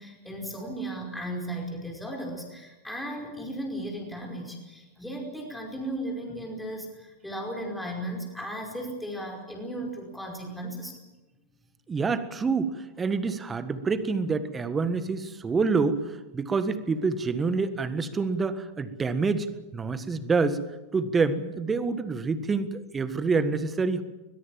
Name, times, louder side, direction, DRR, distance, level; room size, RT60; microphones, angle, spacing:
voice 1, 0.0-10.9 19.8-20.0, right 1 dB, 5° left, 0 dB, 5.1 m, -36 dB
voice 2, 11.9-19.5 19.7-20.6 20.9-24.0, right 4 dB, 15° right, 13 dB, 1.6 m, -27 dB
21.5 x 21.5 x 7.5 m, 1.1 s
figure-of-eight pair, 90°, 0 cm